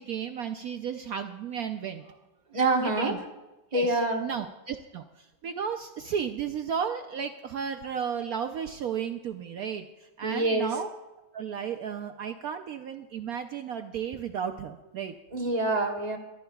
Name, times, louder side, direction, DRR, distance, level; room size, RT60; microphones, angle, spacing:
voice 1, 0.0-2.2 2.8-3.2 3.7-10.9 11.3-15.1, right 7 dB, 75° right, 6 dB, 0.8 m, -34 dB
voice 2, 2.5-3.1 3.7-4.2 10.2-10.7 15.3-16.2, right 2 dB, 25° right, 1 dB, 1.1 m, -26 dB
24.0 x 12.5 x 2.3 m, 1.1 s
omnidirectional pair, 2.1 m